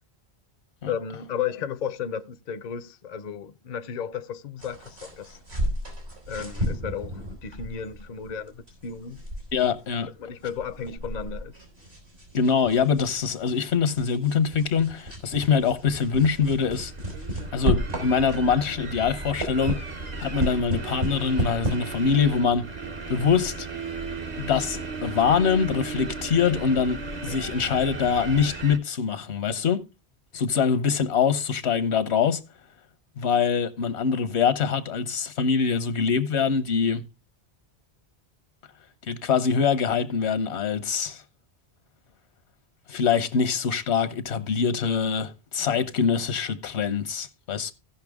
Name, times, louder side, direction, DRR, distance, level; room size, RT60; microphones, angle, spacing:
voice 1, 0.9-5.4 6.3-9.2 10.2-11.6, left 7 dB, 50° left, 0.6 m, -34 dB
sound 1, 4.6-18.6 19.0-21.8, equal, 75° right, 4.0 m, -33 dB
voice 2, 9.5-10.1 12.3-16.9 17.5-19.9 20.2-22.7 23.1-23.7 24.4-29.8 30.3-32.4 33.2-37.0 39.1-41.2 42.9-47.7, left 6 dB, 80° left, 1.1 m, -24 dB
sound 2, 15.7-28.8, right 4 dB, 45° right, 0.9 m, -36 dB
16.0 x 5.6 x 3.5 m
omnidirectional pair, 1.1 m